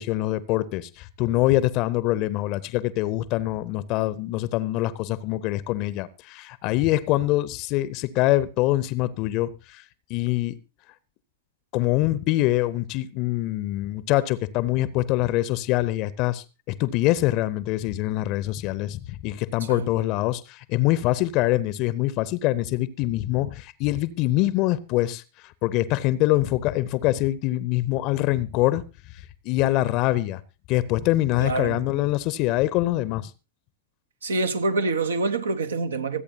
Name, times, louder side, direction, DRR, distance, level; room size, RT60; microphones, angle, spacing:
voice 1, 0.0-9.8 10.1-10.6 11.7-28.8 29.1-30.4 30.7-33.3, left 16 dB, 40° left, 0.7 m, -24 dB
voice 2, 31.4-31.8 34.2-36.2, right 3 dB, 70° right, 0.9 m, -26 dB
25.0 x 8.4 x 2.8 m
figure-of-eight pair, 90°, 0 cm